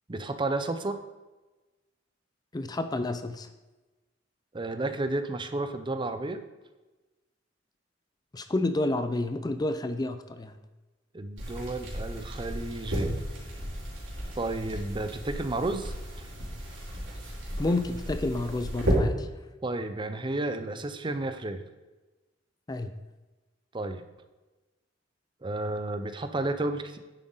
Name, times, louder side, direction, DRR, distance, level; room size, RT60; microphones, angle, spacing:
voice 1, 0.1-1.0 4.5-6.4 11.1-13.3 14.4-16.3 19.6-21.6 23.7-24.0 25.4-27.0, right 2 dB, 25° right, 9 dB, 0.6 m, -32 dB
voice 2, 2.5-3.5 8.3-10.6 17.6-19.3 22.7-22.9, left 2 dB, 20° left, 10 dB, 0.5 m, -30 dB
sound 1, 11.4-18.9, equal, 85° right, 3.5 m, -34 dB
10.0 x 7.6 x 3.9 m, 1.1 s
head